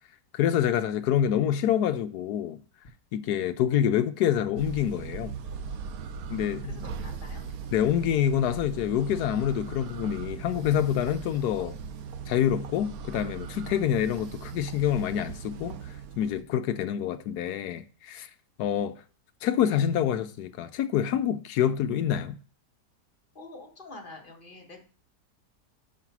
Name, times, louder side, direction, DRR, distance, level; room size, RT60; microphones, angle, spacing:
voice 1, 0.3-2.6 3.1-5.3 6.3-6.8 7.7-11.8 12.3-15.8 16.2-18.3 18.6-19.0 19.4-22.4, left 10 dB, 75° left, 1.0 m, -26 dB
sound 1, 4.6-16.4, right 6 dB, 65° right, 1.0 m, -39 dB
voice 2, 6.3-7.5 23.3-24.8, left 2 dB, 30° left, 1.5 m, -46 dB
5.9 x 4.9 x 5.9 m
omnidirectional pair, 1.9 m